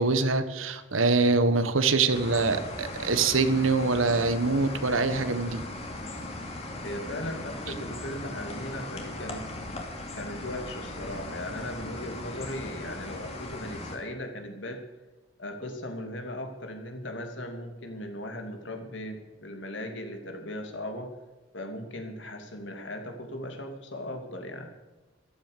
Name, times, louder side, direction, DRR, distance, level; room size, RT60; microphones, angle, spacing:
voice 1, 0.0-5.6, right 3 dB, 85° right, 11 dB, 1.4 m, -24 dB
sound 1, 2.1-14.0, left 2 dB, 30° left, 2.7 m, -38 dB
voice 2, 6.6-9.4 10.2-14.8 15.4-21.1 21.5-24.7, left 1 dB, 65° left, 4 dB, 2.9 m, -38 dB
14.5 x 13.0 x 6.8 m, 1.2 s
head